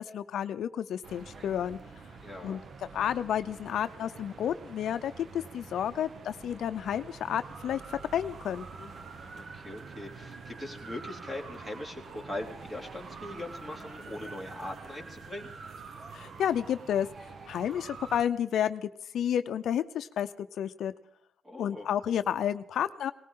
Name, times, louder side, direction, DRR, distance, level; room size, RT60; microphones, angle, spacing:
voice 1, 0.0-1.8 2.4-2.6 2.9-8.9 16.1-17.1 17.5-18.9 19.1-20.9 21.6-23.1, left 9 dB, 65° left, 10 dB, 0.6 m, -31 dB
sound 1, 1.0-18.2, right 4 dB, 40° right, 0.9 m, -46 dB
voice 2, 2.2-2.6 9.2-15.5 21.4-21.9, left 1 dB, 10° right, 2 dB, 2.8 m, -41 dB
20.0 x 19.0 x 3.8 m, 0.77 s
cardioid pair, 145°, 0 cm